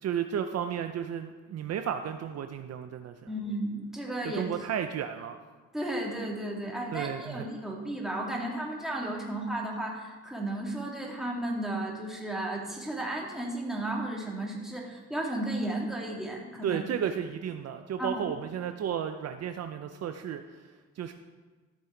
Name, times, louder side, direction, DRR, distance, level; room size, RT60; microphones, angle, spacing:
voice 1, 0.0-3.2 4.2-5.4 6.6-7.5 16.6-21.1, right 9 dB, 55° right, 7 dB, 0.6 m, -33 dB
voice 2, 3.3-4.4 5.7-16.8 18.0-18.3, right 1 dB, ahead, -3 dB, 2.5 m, -34 dB
14.0 x 5.5 x 4.5 m, 1.4 s
cardioid pair, 90°, 30 cm